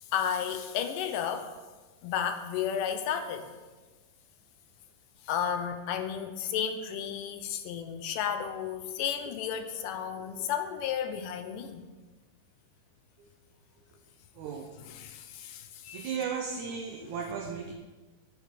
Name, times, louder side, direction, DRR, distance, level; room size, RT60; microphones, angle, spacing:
voice 1, 0.1-1.5 2.0-3.5 5.3-11.9 14.9-16.1 17.0-17.1, left 8 dB, 75° left, 7 dB, 2.3 m, -33 dB
voice 2, 14.4-14.8 15.9-17.7, right 6 dB, 75° right, 3 dB, 1.9 m, -36 dB
15.5 x 6.5 x 4.2 m, 1.3 s
omnidirectional pair, 4.0 m